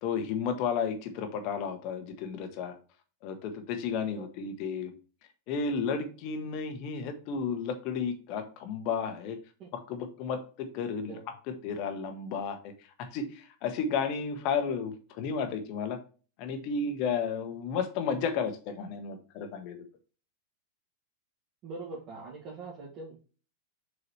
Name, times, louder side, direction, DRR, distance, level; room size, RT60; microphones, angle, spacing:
voice 1, 0.0-2.7 3.2-4.9 5.5-9.4 9.7-11.1 11.5-12.7 13.0-16.0 16.4-19.8, left 6 dB, 45° left, 7 dB, 1.5 m, -33 dB
voice 2, 21.6-23.2, right 3 dB, 35° right, -5 dB, 1.9 m, -42 dB
7.0 x 4.8 x 3.2 m, 0.36 s
figure-of-eight pair, 90°, 0 cm